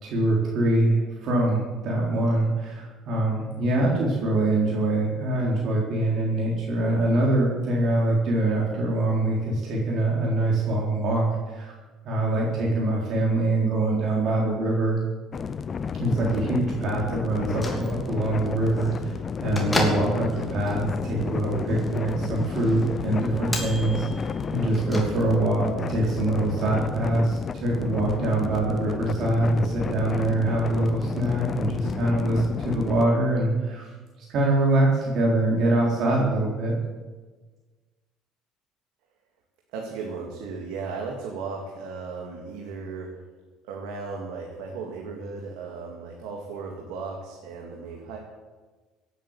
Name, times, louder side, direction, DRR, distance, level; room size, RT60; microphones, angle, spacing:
voice 1, 0.0-11.7 12.0-15.0 16.0-19.1 19.4-33.9 34.2-36.7, right 2 dB, 55° right, -3 dB, 3.8 m, -24 dB
sound 1, 15.3-33.0, left 6 dB, 30° left, 0.5 m, -32 dB
Bell / Microwave oven, 17.3-25.6, left 1 dB, 10° left, 3.0 m, -35 dB
voice 2, 39.7-43.1 43.6-48.2, right 4 dB, 90° right, 0 dB, 2.4 m, -36 dB
17.0 x 9.2 x 7.3 m, 1.3 s
cardioid pair, 125°, 0 cm